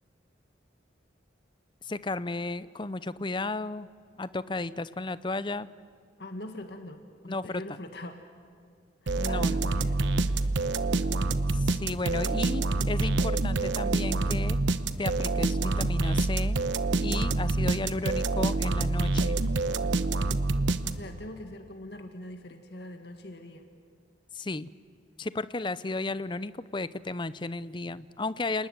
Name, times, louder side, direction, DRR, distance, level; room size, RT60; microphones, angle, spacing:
voice 1, 1.8-3.9 4.2-5.7 7.3-7.6 9.2-9.7 11.5-14.6 15.0-16.6 17.0-19.4 24.3-24.7 25.2-28.7, left 2 dB, 25° left, 15 dB, 0.6 m, -34 dB
voice 2, 6.2-8.2 9.0-10.0 17.8-18.3 20.8-23.7, left 1 dB, 60° left, 5 dB, 1.9 m, -43 dB
sound 1, 9.1-21.3, right 2 dB, 75° right, 1.0 m, -27 dB
29.5 x 20.0 x 9.2 m, 2.2 s
head